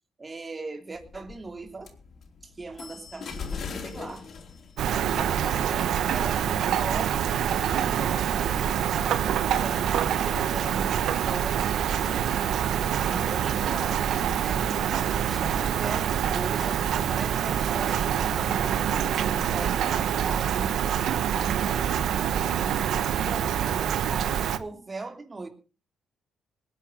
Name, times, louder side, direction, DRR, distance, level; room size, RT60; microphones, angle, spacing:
voice 1, 0.2-1.9 2.4-4.3 5.1-9.2 9.5-11.8 13.1-20.8 21.3-22.7 23.1-25.5, right 3 dB, 25° right, 3.2 m, -39 dB
sound 1, 0.9-16.3, left 5 dB, 55° left, 4.3 m, -45 dB
Rain, 4.8-24.6, right 9 dB, 75° right, 1.2 m, -26 dB
voice 2, 11.6-12.9 22.7-23.5, right 5 dB, 50° right, 4.8 m, -45 dB
sound 2, 14.6-19.6, left 1 dB, 15° left, 6.4 m, -44 dB
19.5 x 10.0 x 5.6 m
cardioid pair, 90°, 0 cm